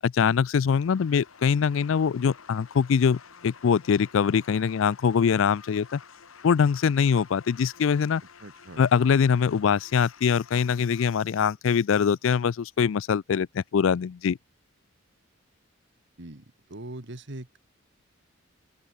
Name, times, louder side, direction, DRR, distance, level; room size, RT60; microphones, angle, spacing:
voice 1, 0.0-6.0 6.4-8.2 8.8-14.4, left 6 dB, 65° left, 0.4 m, -23 dB
sound 1, 0.7-11.1, left 6 dB, 85° left, 1.4 m, -51 dB
voice 2, 8.4-8.9 16.2-17.6, right 1 dB, 55° right, 1.7 m, -41 dB
head